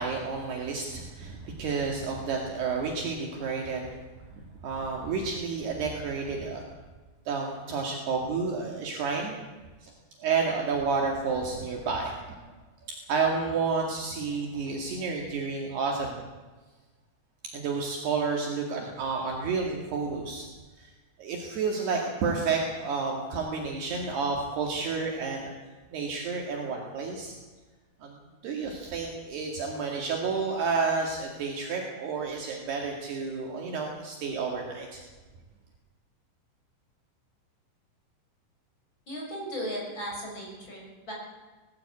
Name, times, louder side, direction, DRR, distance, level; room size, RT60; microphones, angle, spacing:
voice 1, 0.0-3.9 4.3-6.6 7.3-9.4 9.8-9.9 10.2-12.4 13.1-16.2 17.5-20.5 20.8-20.9 21.2-25.5 25.9-27.3 28.0-28.1 28.4-35.0, right 4 dB, 65° right, 0 dB, 3.9 m, -30 dB
voice 2, 39.1-41.1, equal, 25° left, -2 dB, 6.8 m, -36 dB
20.5 x 15.0 x 8.5 m, 1.3 s
omnidirectional pair, 5.3 m